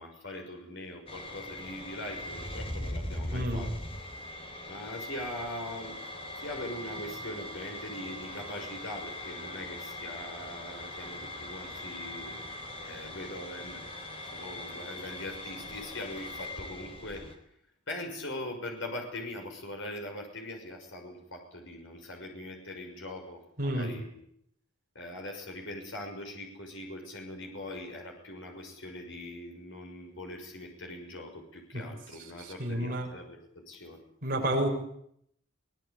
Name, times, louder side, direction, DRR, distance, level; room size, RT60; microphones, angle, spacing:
voice 1, 0.0-3.7 4.7-6.0 6.4-17.2 17.9-24.0 24.9-34.0, left 1 dB, 65° left, 2 dB, 6.2 m, -41 dB
sound 1, 1.1-17.3, left 1 dB, 30° left, 3.6 m, -41 dB
voice 2, 3.3-3.7 23.6-23.9 32.6-33.1 34.2-34.7, right 1 dB, 45° right, 0 dB, 7.0 m, -29 dB
23.5 x 19.0 x 8.6 m, 0.70 s
head